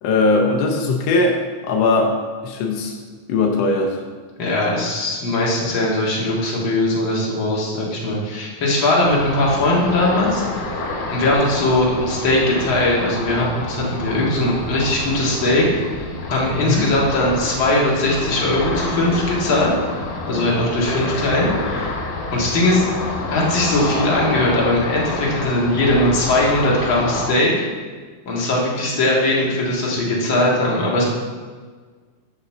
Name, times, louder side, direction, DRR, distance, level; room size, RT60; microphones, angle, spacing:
voice 1, 0.0-2.1 2.4-2.9 3.3-4.0 16.6-16.8, left 3 dB, 90° left, 1 dB, 1.4 m, -19 dB
voice 2, 4.4-10.4 11.1-15.7 16.3-19.7 20.3-21.9 22.3-22.8 23.3-27.5 28.3-31.0, left 1 dB, 45° left, -4 dB, 2.1 m, -19 dB
Ocean, 9.0-27.3, left 2 dB, 65° left, 2.6 m, -28 dB
6.8 x 5.4 x 7.2 m, 1.5 s
omnidirectional pair, 4.0 m